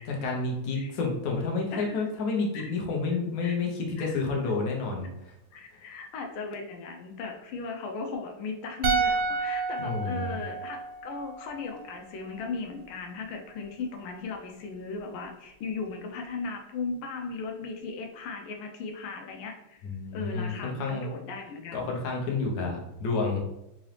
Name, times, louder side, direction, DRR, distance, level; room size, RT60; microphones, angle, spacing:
voice 1, 0.0-5.4 9.8-10.4 19.8-21.1 21.7-23.4, left 4 dB, 60° left, 0 dB, 1.0 m, -30 dB
voice 2, 1.7-2.1 2.5-2.7 3.4-3.5 4.0-4.1 5.5-19.9 20.1-21.9, left 4 dB, 90° left, 3 dB, 1.5 m, -37 dB
sound 1, 8.8-12.1 12.3-12.5, right 5 dB, 85° right, 1.4 m, -30 dB
3.8 x 2.7 x 3.2 m, 0.86 s
omnidirectional pair, 2.3 m